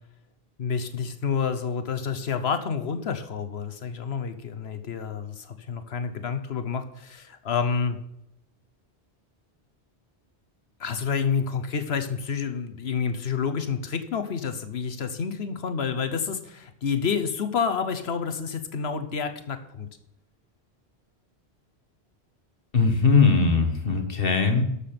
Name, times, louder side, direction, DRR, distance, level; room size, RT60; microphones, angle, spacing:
voice 1, 0.6-8.0 10.8-19.9, left 6 dB, 75° left, 10 dB, 1.1 m, -29 dB
voice 2, 22.7-24.6, left 4 dB, 60° left, 5 dB, 1.8 m, -20 dB
11.5 x 6.9 x 5.8 m, 0.81 s
omnidirectional pair, 1.1 m